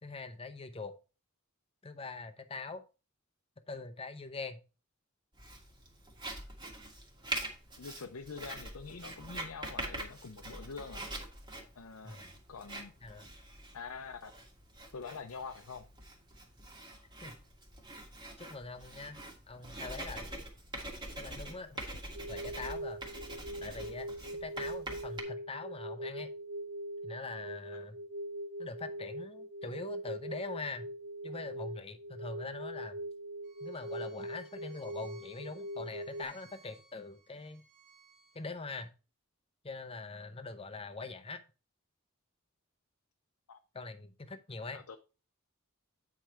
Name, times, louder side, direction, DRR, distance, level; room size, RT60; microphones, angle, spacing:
voice 1, 0.0-0.9 1.8-2.8 3.7-4.6 12.0-12.3 13.0-13.3 17.2-17.4 18.4-19.2 19.5-20.3 21.2-21.8 22.3-23.0 23.6-24.1 24.4-26.3 27.0-28.0 28.6-30.9 31.2-33.0 33.6-37.6 38.3-38.9 39.6-41.4 43.7-44.8, left 3 dB, 25° left, 0.7 m, -43 dB
Writing, 5.4-25.2, right 1 dB, 20° right, 1.7 m, -44 dB
voice 2, 7.8-11.1 11.8-12.2 12.5-12.9 13.7-14.3 14.9-15.9 43.5-43.6 44.7-45.0, left 5 dB, 75° left, 0.6 m, -45 dB
sound 1, 22.1-36.2, right 1 dB, 55° right, 0.4 m, -42 dB
Bowed string instrument, 33.4-38.9, right 5 dB, 35° right, 1.7 m, -62 dB
8.6 x 4.7 x 4.4 m
head